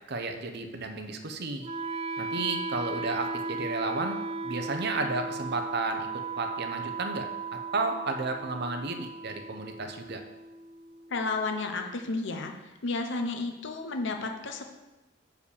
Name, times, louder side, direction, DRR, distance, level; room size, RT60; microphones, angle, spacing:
voice 1, 0.1-1.7 2.2-10.2, right 3 dB, 60° right, 5 dB, 0.8 m, -33 dB
Wind instrument woodwind instrument, 1.6-11.6, right 4 dB, 30° right, 0.4 m, -36 dB
voice 2, 11.1-14.6, left 3 dB, 65° left, 4 dB, 0.9 m, -32 dB
6.6 x 5.0 x 7.0 m, 1.1 s
head